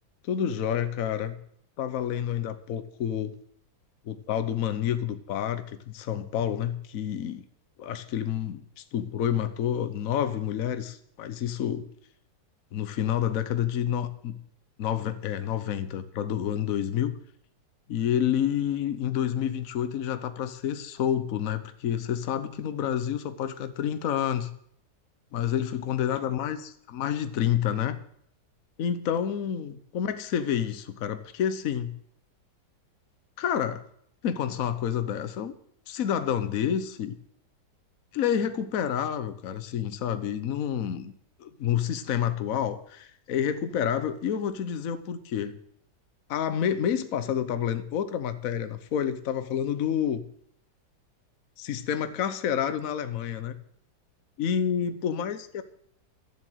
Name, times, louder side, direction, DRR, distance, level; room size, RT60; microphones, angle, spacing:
voice 1, 0.3-1.4 1.8-3.3 4.0-7.4 7.8-11.9 12.7-14.4 14.8-17.1 17.9-24.5 25.3-26.6 26.9-28.0 28.8-31.9 33.4-33.8 34.2-35.5 35.9-37.2 38.1-41.1 41.4-45.6 46.3-50.2 51.6-53.6 54.4-55.6, left 9 dB, 55° left, 11 dB, 1.2 m, -29 dB
12.5 x 7.5 x 7.9 m, 0.66 s
omnidirectional pair, 1.9 m